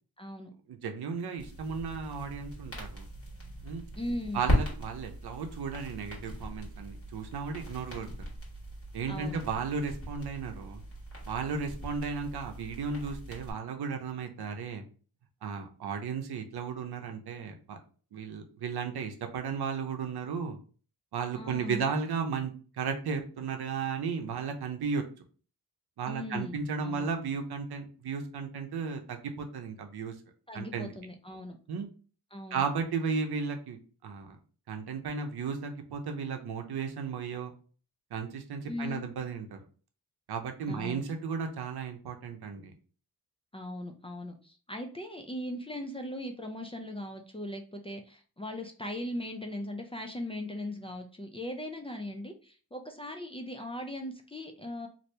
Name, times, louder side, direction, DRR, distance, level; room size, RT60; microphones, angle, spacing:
voice 1, 0.2-0.5 4.0-4.4 9.1-9.4 21.4-21.8 26.1-27.1 30.5-31.6 32.3-32.6 38.6-39.1 40.7-41.0 43.5-54.9, left 1 dB, 15° left, 3 dB, 0.3 m, -39 dB
voice 2, 0.7-3.1 3.6-3.8 4.3-8.1 8.9-10.8 11.3-14.8 15.4-17.8 18.1-20.6 21.1-25.0 26.0-30.1 30.5-30.9 31.7-31.9 32.5-34.4 34.7-37.5 38.1-39.6 40.3-42.7, right 5 dB, 75° right, 5 dB, 0.7 m, -34 dB
sound 1, 1.4-13.5, equal, 35° left, 1.4 m, -38 dB
2.8 x 2.6 x 3.2 m, 0.39 s
wide cardioid pair, 110°, 39 cm